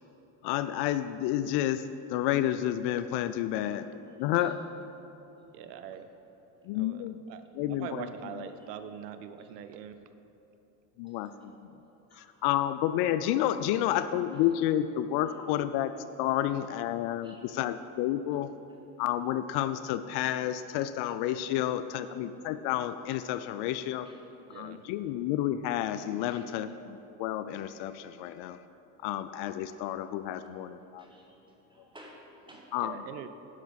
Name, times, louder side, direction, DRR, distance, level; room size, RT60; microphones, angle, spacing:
voice 1, 0.4-1.8 2.1-3.9 4.2-4.6 6.7-7.2 7.5-8.1 11.0-11.5 12.1-18.5 19.0-24.1 24.5-28.6 29.0-31.0 32.7-33.0, left 12 dB, 60° left, 12 dB, 0.5 m, -30 dB
voice 2, 5.5-6.1 6.8-7.4 7.7-10.0 24.5-24.8 32.8-33.3, right 9 dB, 90° right, 10 dB, 0.7 m, -42 dB
voice 3, 31.0-32.7, equal, 10° right, -2 dB, 2.3 m, -55 dB
10.5 x 5.8 x 6.3 m, 3.0 s
supercardioid pair, 85°, 47 cm